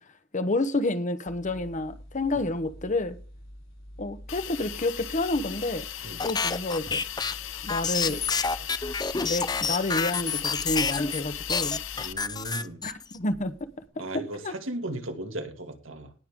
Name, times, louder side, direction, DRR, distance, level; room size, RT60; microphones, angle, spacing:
voice 1, 0.3-3.2 4.0-5.8 6.2-7.0 7.6-8.2 9.2-11.8 12.8-13.5 14.4-14.5, left 2 dB, 40° left, 1.0 m, -29 dB
sound 1, 1.3-13.9, equal, 90° left, 5.6 m, -46 dB
Hiss, 4.3-12.1, left 12 dB, 70° left, 0.8 m, -38 dB
sound 2, 6.2-11.2 11.5-13.2, left 5 dB, 20° left, 0.6 m, -28 dB
voice 2, 11.9-12.8 14.0-16.1, right 1 dB, 85° right, 2.4 m, -36 dB
19.5 x 6.6 x 3.7 m
head